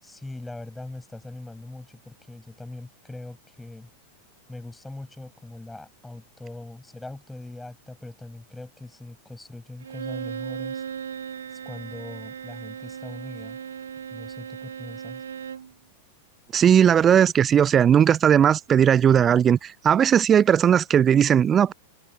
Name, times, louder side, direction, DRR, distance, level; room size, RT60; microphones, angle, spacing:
voice 1, 0.0-3.9 4.5-10.8 11.5-13.6 14.1-15.2, left 2 dB, 5° left, 6.2 m, -41 dB
Bowed string instrument, 9.8-15.7, right 7 dB, 70° right, 1.6 m, -37 dB
voice 2, 16.5-21.7, right 8 dB, 25° right, 0.3 m, -18 dB
figure-of-eight pair, 90°, 0 cm